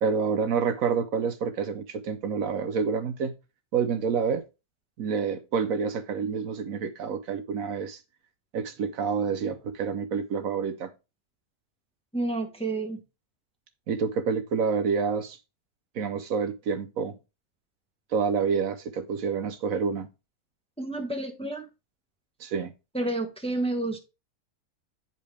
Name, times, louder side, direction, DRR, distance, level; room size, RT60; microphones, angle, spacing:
voice 1, 0.0-3.3 3.7-4.4 5.0-8.0 8.5-10.9 13.9-15.4 15.9-17.2 18.1-20.1 22.4-22.7, right 6 dB, 70° right, 1.1 m, -28 dB
voice 2, 12.1-13.0 20.8-21.7 22.9-24.0, right 2 dB, 5° left, 1.0 m, -30 dB
8.9 x 5.4 x 3.3 m
omnidirectional pair, 1.6 m